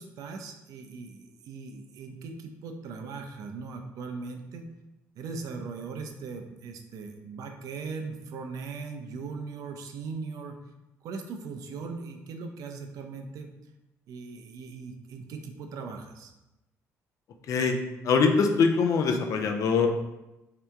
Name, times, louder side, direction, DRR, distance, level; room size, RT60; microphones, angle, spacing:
voice 1, 0.0-4.7 5.2-10.6 11.0-13.5 14.1-16.3, right 4 dB, 70° right, 4 dB, 0.5 m, -39 dB
voice 2, 17.5-17.8 18.0-19.9, left 5 dB, 60° left, 4 dB, 0.5 m, -23 dB
3.3 x 2.8 x 3.5 m, 0.97 s
cardioid pair, 85°, 6 cm